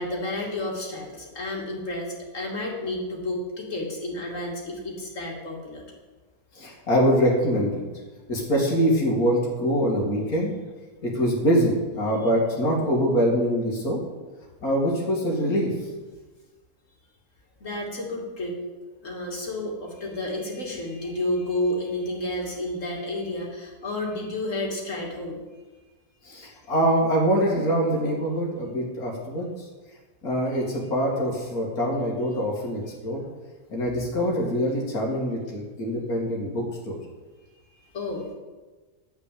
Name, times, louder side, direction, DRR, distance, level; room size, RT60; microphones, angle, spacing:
voice 1, 0.0-5.8 17.6-18.6 19.0-25.4 37.7-38.3, left 1 dB, 55° left, -2 dB, 3.0 m, -31 dB
voice 2, 6.5-7.8 8.3-10.5 11.0-14.0 14.6-15.7 26.2-29.7 30.2-33.2 33.7-37.0, equal, 80° left, -2 dB, 2.8 m, -24 dB
11.5 x 6.3 x 8.5 m, 1.3 s
omnidirectional pair, 1.6 m